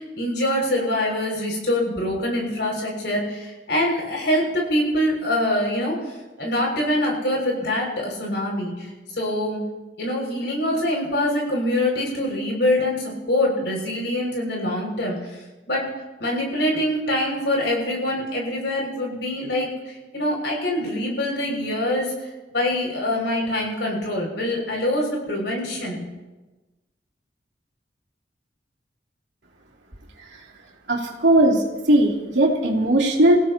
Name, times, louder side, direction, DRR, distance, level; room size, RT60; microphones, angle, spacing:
voice 1, 0.0-9.6 10.0-15.9 16.2-26.0, left 1 dB, 80° left, -1 dB, 6.2 m, -24 dB
voice 2, 30.9-33.4, right 1 dB, 90° right, -1 dB, 2.8 m, -18 dB
27.5 x 16.5 x 2.9 m, 1.2 s
head